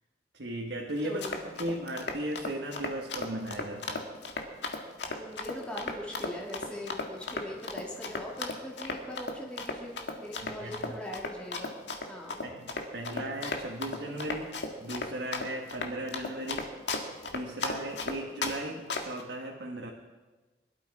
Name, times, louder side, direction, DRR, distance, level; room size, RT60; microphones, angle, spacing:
voice 1, 0.3-1.2 1.6-4.0 10.4-10.9 12.4-16.7 17.3-19.9, right 1 dB, 75° right, 0 dB, 1.4 m, -37 dB
Run, 1.0-18.6 18.9-19.2, left 3 dB, 80° left, 1.8 m, -35 dB
voice 2, 1.0-1.5 5.1-11.8 12.1-12.4, left 1 dB, 5° left, -3 dB, 2.2 m, -41 dB
21.5 x 12.0 x 4.8 m, 1.3 s
head